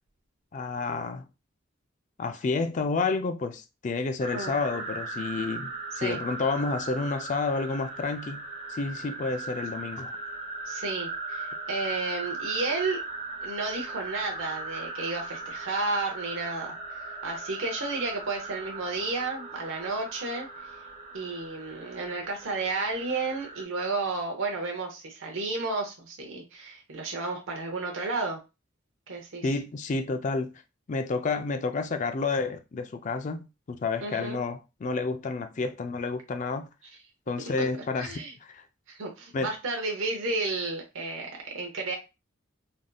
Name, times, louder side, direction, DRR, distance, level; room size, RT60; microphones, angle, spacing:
voice 1, 0.5-1.2 2.2-10.1 29.4-30.5 30.9-36.7 37.3-38.1 38.4-38.6 39.3-39.5, left 4 dB, 40° left, 0.3 m, -30 dB
sound 1, 4.2-23.6, right 3 dB, 35° right, 0.9 m, -38 dB
voice 2, 10.7-13.0 13.4-20.5 21.1-28.4 29.1-29.5 34.0-34.4 37.6-37.7 37.9-38.3 38.9-42.0, right 3 dB, 80° right, 0.7 m, -32 dB
3.4 x 2.6 x 2.2 m
head